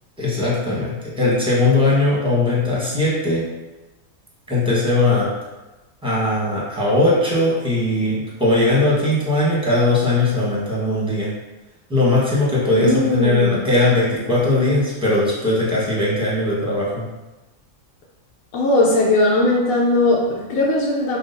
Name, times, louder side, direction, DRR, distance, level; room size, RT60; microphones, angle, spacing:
voice 1, 0.2-3.4 4.5-5.3 6.0-11.3 11.9-17.1, left 2 dB, 5° right, -7 dB, 1.0 m, -19 dB
voice 2, 12.7-13.6 18.5-21.2, left 2 dB, 90° left, -3 dB, 1.1 m, -18 dB
5.7 x 2.4 x 2.6 m, 1.1 s
omnidirectional pair, 1.4 m